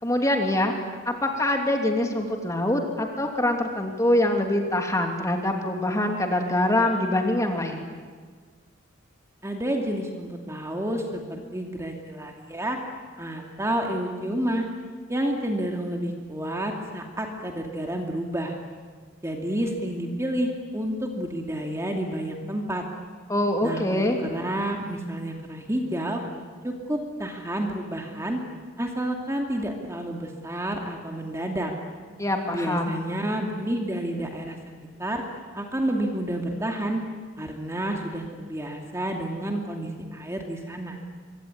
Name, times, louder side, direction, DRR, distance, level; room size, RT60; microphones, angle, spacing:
voice 1, 0.0-0.7 1.0-7.8 23.3-24.2 32.2-32.9, left 1 dB, 15° left, 3 dB, 3.0 m, -24 dB
voice 2, 9.4-12.8 13.2-14.7 15.1-18.5 19.2-22.8 23.6-26.2 26.6-28.4 28.8-31.7 32.5-34.6 35.0-35.2 35.5-37.0 37.4-41.0, right 1 dB, 15° right, 2 dB, 2.5 m, -30 dB
25.0 x 23.5 x 9.8 m, 1.5 s
head